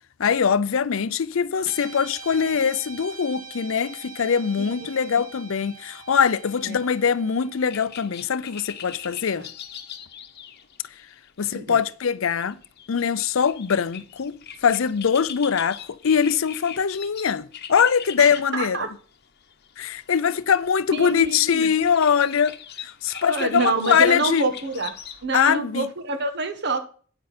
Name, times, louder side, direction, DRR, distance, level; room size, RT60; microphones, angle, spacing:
voice 1, 0.2-9.5 11.4-12.6 12.9-18.8 19.8-22.6 22.8-24.4 25.3-25.9, left 7 dB, 70° left, 0.5 m, -22 dB
Guitar, 1.6-10.1, right 4 dB, 85° right, 1.1 m, -44 dB
voice 2, 4.6-4.9 6.6-6.8 9.4-9.5 11.5-11.8 18.2-18.9 20.9-21.7 23.2-24.9 25.2-26.8, right 3 dB, 55° right, 1.4 m, -27 dB
sound 1, 7.6-18.5 18.8-18.9 19.1-25.3, left 9 dB, 55° left, 1.0 m, -41 dB
9.1 x 8.6 x 4.2 m
head